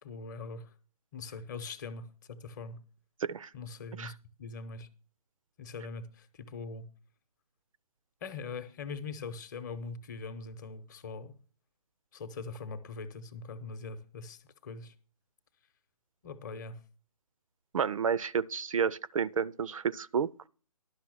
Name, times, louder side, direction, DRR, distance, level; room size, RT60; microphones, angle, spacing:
voice 1, 0.0-0.7 1.1-2.8 3.5-4.9 5.6-6.9 8.2-11.3 12.1-14.9 16.2-16.8, left 4 dB, 30° left, 0.8 m, -42 dB
voice 2, 17.7-20.5, right 7 dB, 60° right, 0.4 m, -31 dB
11.5 x 5.9 x 6.1 m
figure-of-eight pair, 150°, 20 cm